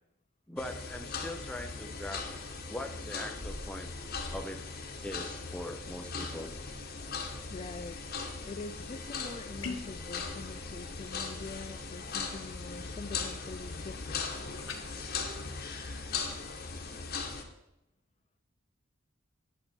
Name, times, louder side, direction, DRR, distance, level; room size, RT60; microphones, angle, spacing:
voice 1, 0.5-2.3 2.7-3.9 4.3-4.6 5.0-6.5, left 1 dB, 5° left, 6 dB, 0.8 m, -41 dB
sound 1, 0.6-17.4, left 4 dB, 50° left, 1.3 m, -39 dB
voice 2, 7.5-8.0 8.5-14.3, left 3 dB, 30° left, 8 dB, 0.3 m, -44 dB
sound 2, 9.6-10.0 14.6-14.8, left 4 dB, 70° left, 1.3 m, -39 dB
10.5 x 7.5 x 4.5 m, 0.88 s
head